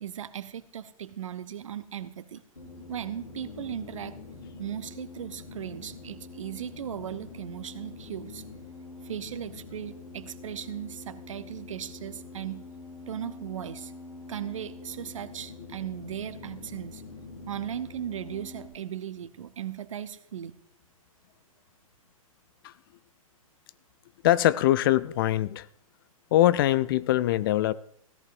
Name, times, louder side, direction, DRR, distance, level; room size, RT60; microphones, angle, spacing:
voice 1, 0.0-2.4 2.9-4.2 4.6-8.4 9.0-12.6 13.1-13.9 14.3-17.0 17.5-20.5, right 10 dB, 60° right, 0.8 m, -37 dB
sound 1, 2.6-18.7, left 3 dB, 85° left, 5.1 m, -45 dB
voice 2, 24.2-25.7 26.3-27.7, left 14 dB, 40° left, 0.4 m, -22 dB
16.5 x 14.5 x 2.6 m
figure-of-eight pair, 110°, 18 cm